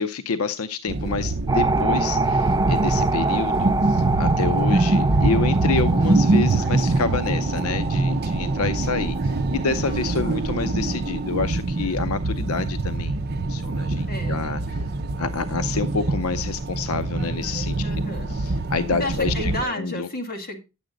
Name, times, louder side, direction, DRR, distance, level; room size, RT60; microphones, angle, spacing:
voice 1, 0.0-13.2 13.5-14.8 15.2-17.8 18.3-20.1, left 4 dB, 85° left, 0.6 m, -28 dB
sound 1, 0.9-19.6, right 2 dB, 50° right, 0.7 m, -24 dB
sound 2, 1.5-10.9 11.2-11.3, right 3 dB, 15° right, 0.4 m, -27 dB
voice 2, 9.8-10.4 14.1-14.4 17.8-18.4 19.0-20.6, left 1 dB, 45° left, 2.0 m, -32 dB
10.0 x 7.7 x 3.8 m
head